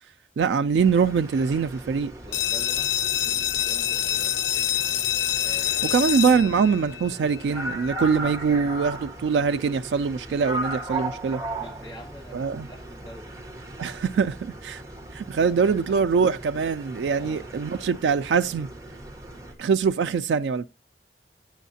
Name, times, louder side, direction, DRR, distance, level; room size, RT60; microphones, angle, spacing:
voice 1, 0.4-2.1 5.9-11.4 12.3-12.7 13.8-14.8 15.1-18.7 19.6-20.7, right 5 dB, 85° right, 0.3 m, -23 dB
sound 1, 0.8-19.5, right 2 dB, 20° right, 1.1 m, -38 dB
voice 2, 2.2-4.8 5.4-6.0 11.6-13.7 15.4-16.0 17.1-17.6, equal, 20° left, 1.5 m, -46 dB
sound 2, 2.3-7.8, left 11 dB, 85° left, 0.4 m, -26 dB
9.1 x 6.4 x 2.7 m
head